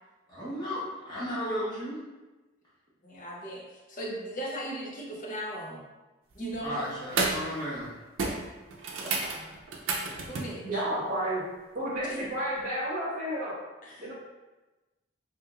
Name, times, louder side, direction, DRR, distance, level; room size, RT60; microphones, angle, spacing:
voice 1, 0.3-2.0 6.6-8.0, equal, 20° left, -9 dB, 1.1 m, -34 dB
voice 2, 3.0-5.8 6.4-6.9 9.0-9.5 10.2-10.6 12.0-12.2 13.8-14.0, right 1 dB, 40° left, -3 dB, 0.6 m, -38 dB
sound 1, 6.3-6.6 7.0-7.5 7.8-7.9 8.2-10.6 12.6-12.7, right 3 dB, 85° right, 0.5 m, -31 dB
voice 3, 10.6-11.4 11.7-13.5 14.0-14.1, right 1 dB, 40° right, -8 dB, 0.6 m, -31 dB
3.4 x 2.9 x 2.3 m, 1.1 s
head